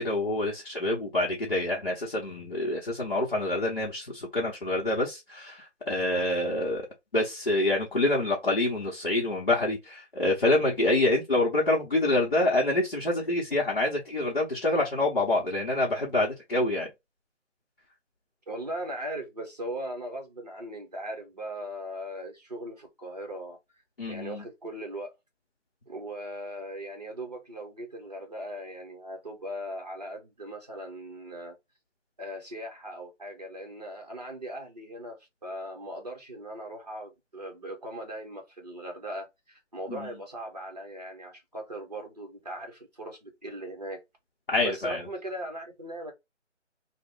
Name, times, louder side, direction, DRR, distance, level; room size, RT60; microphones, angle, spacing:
voice 1, 0.0-6.9 7.1-16.9 24.0-24.4 39.9-40.1 44.5-45.0, left 2 dB, 45° left, 0.9 m, -26 dB
voice 2, 18.5-23.6 24.1-25.1 25.9-31.6 32.2-44.0 44.6-46.1, right 1 dB, 35° right, 0.9 m, -39 dB
3.0 x 2.2 x 3.6 m
figure-of-eight pair, 175°, 37 cm